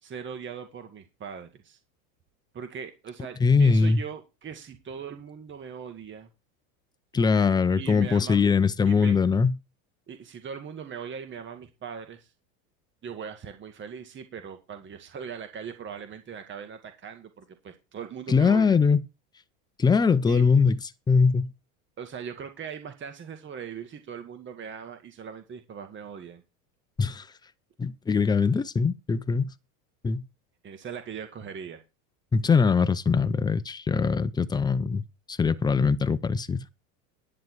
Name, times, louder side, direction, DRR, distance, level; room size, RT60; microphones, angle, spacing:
voice 1, 0.0-1.8 2.5-6.3 7.8-8.5 8.9-9.2 10.1-12.3 13.0-18.8 20.3-20.5 22.0-26.4 30.6-31.8, right 7 dB, 25° right, 2.1 m, -40 dB
voice 2, 3.4-4.0 7.1-9.6 18.3-19.0 19.8-20.8 21.1-21.5 27.0-27.3 27.8-29.5 30.0-30.2 32.3-36.6, left 5 dB, 10° left, 0.5 m, -22 dB
11.0 x 9.9 x 4.7 m
supercardioid pair, 125°, 43 cm